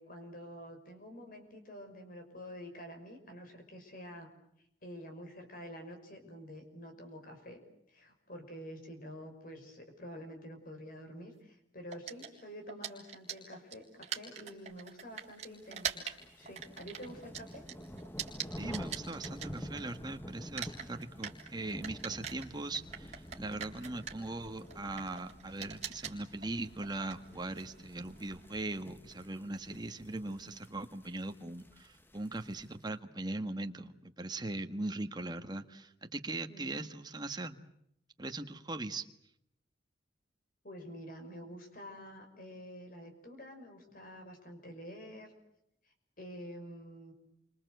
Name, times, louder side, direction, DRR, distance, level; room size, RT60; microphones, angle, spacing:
voice 1, 0.0-4.3 4.8-7.6 7.9-16.1 16.3-17.6 36.5-36.9 40.6-45.3 45.8-47.1, equal, 50° left, 5 dB, 5.8 m, -48 dB
sound 1, 11.9-20.1 20.4-28.6, right 8 dB, 40° right, 3.7 m, -43 dB
sound 2, 15.3-32.8, equal, 10° left, 1.2 m, -49 dB
voice 2, 18.6-37.6 38.2-39.1, right 2 dB, 25° right, 7 dB, 1.5 m, -40 dB
29.0 x 25.5 x 8.0 m, 0.76 s
head